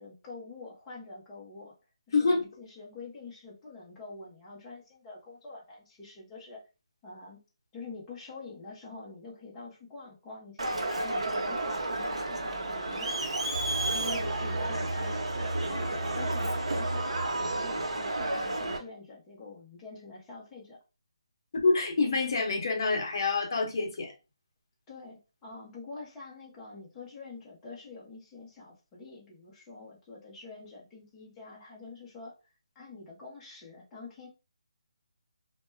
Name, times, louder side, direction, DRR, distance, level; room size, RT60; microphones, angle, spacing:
voice 1, 0.0-1.7 2.1-6.6 7.0-7.4 7.7-17.1 17.4-20.8 24.9-34.3, left 3 dB, 10° left, 0.5 m, -46 dB
voice 2, 2.1-2.4 14.2-14.3 21.5-24.1, left 3 dB, 40° left, 0.7 m, -27 dB
Crowd, 10.6-18.8, right 2 dB, 85° right, 0.8 m, -31 dB
2.1 x 2.1 x 3.2 m
hypercardioid pair, 170°, 3 cm